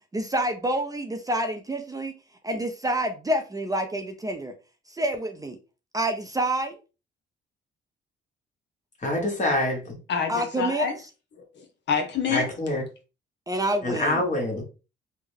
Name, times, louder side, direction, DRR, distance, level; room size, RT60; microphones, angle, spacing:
voice 1, 0.1-2.1 2.4-4.5 4.9-5.6 5.9-6.7 10.3-10.9 13.5-14.2, right 1 dB, 20° right, 0.5 m, -27 dB
voice 2, 9.0-10.0 12.3-12.8 13.8-14.6, left 1 dB, 40° left, 1.4 m, -26 dB
voice 3, 10.1-11.0 11.6-12.5, left 6 dB, 65° left, 0.9 m, -27 dB
3.4 x 2.2 x 3.4 m
cardioid pair, 90°, 20 cm